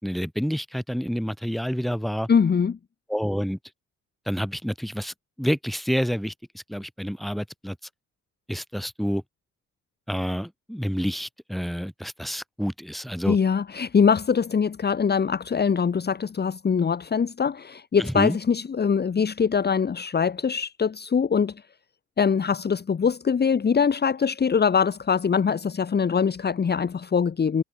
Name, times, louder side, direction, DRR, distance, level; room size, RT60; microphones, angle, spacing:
voice 1, 0.0-2.3 3.1-3.6 4.3-7.8 8.5-9.2 10.1-13.4 18.0-18.4, equal, ahead, 4.6 m, -28 dB
voice 2, 2.3-2.8 13.3-21.6 22.2-27.6, left 6 dB, 35° left, 1.3 m, -23 dB
cardioid pair, 90°, 30 cm